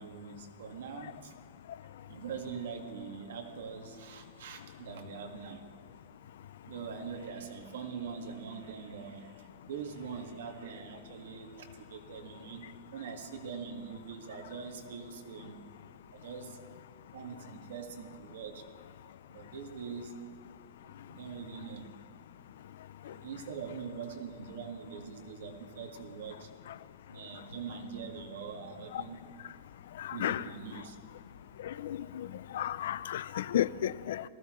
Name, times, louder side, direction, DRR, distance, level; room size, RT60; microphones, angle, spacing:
voice 1, 0.0-1.3 2.1-5.6 6.6-15.6 16.1-16.6 17.1-18.6 19.3-20.1 21.1-21.9 23.0-26.5 27.1-29.2 30.1-31.0 32.0-32.1, right 6 dB, 65° right, 1.7 m, -43 dB
voice 2, 30.0-30.4 31.6-32.3 32.5-34.2, left 11 dB, 60° left, 0.3 m, -33 dB
19.0 x 15.0 x 3.1 m
supercardioid pair, 175°, 0 cm